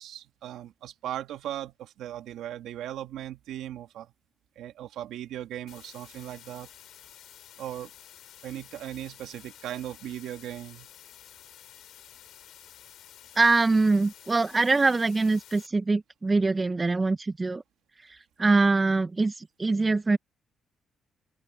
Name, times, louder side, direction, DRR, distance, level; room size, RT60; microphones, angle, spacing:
voice 1, 0.0-4.1 4.6-6.7 7.6-7.9 8.4-10.9, right 12 dB, 85° right, 2.0 m, -38 dB
sound 1, 5.7-15.7, left 11 dB, 75° left, 4.7 m, -51 dB
voice 2, 13.4-17.6 18.4-20.2, right 3 dB, 25° right, 0.6 m, -23 dB
open air
cardioid pair, 90°, 0 cm